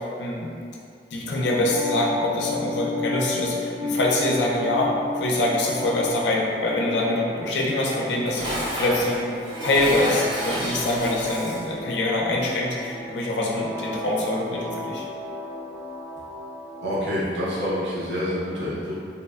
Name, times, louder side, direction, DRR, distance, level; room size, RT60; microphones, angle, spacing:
voice 1, 0.2-0.5 1.1-9.2 9.6-15.0, left 2 dB, 85° left, -3 dB, 0.4 m, -24 dB
sound 1, 1.3-17.2, left 1 dB, 30° left, 0.5 m, -34 dB
Dishes pots and pans, 7.9-11.8, right 1 dB, 25° right, 0.5 m, -31 dB
voice 2, 16.8-19.0, equal, 85° right, -8 dB, 0.5 m, -27 dB
2.9 x 2.0 x 2.2 m, 2.4 s
head